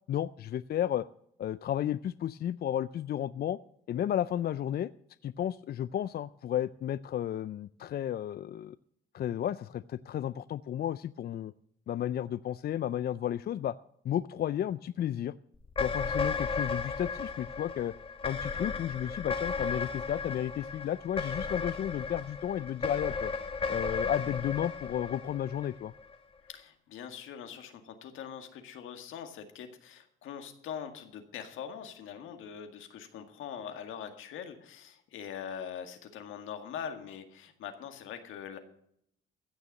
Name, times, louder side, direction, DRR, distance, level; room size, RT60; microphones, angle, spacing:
voice 1, 0.1-1.1 1.4-3.6 3.9-4.9 5.2-8.8 9.1-11.5 11.9-13.8 14.0-15.3 15.8-17.9 18.2-23.3 23.7-25.9, left 11 dB, 50° left, 16 dB, 0.4 m, -33 dB
sound 1, 15.6-26.1, left 4 dB, 25° left, 1.5 m, -35 dB
voice 2, 26.5-38.6, left 8 dB, 85° left, 6 dB, 1.9 m, -43 dB
15.5 x 6.9 x 7.6 m, 0.70 s
cardioid pair, 90°, 20 cm